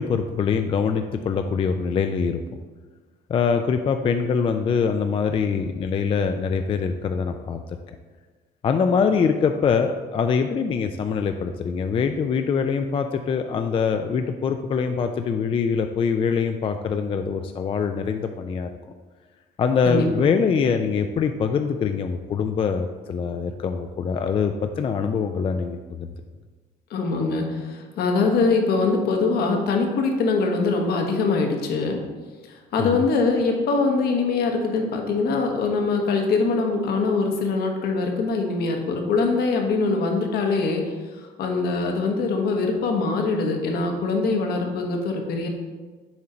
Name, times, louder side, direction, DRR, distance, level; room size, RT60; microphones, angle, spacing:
voice 1, 0.0-2.4 3.3-7.6 8.6-18.7 19.6-26.1 32.8-33.1, left 6 dB, 30° left, 6 dB, 0.3 m, -23 dB
voice 2, 26.9-32.0 32.7-40.8 41.4-45.5, left 4 dB, 70° left, 3 dB, 1.1 m, -23 dB
7.1 x 4.5 x 3.9 m, 1.4 s
cardioid pair, 110°, 17 cm